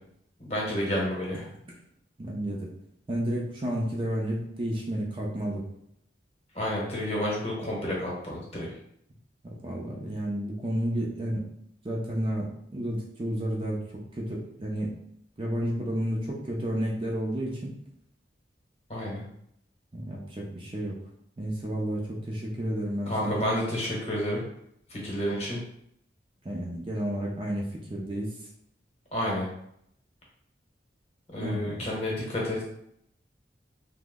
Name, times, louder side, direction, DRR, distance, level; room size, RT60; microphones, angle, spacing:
voice 1, 0.4-1.4 6.6-8.7 18.9-19.2 23.1-24.4 24.9-25.6 29.1-29.5 31.3-32.6, left 1 dB, 35° left, -3 dB, 0.9 m, -30 dB
voice 2, 2.2-2.7 3.1-5.7 9.6-11.5 11.8-13.8 14.2-14.9 15.4-17.7 19.9-21.0 21.4-23.5 26.4-28.3 31.4-31.9, equal, 30° right, -2 dB, 0.4 m, -31 dB
2.8 x 2.0 x 3.5 m, 0.72 s
head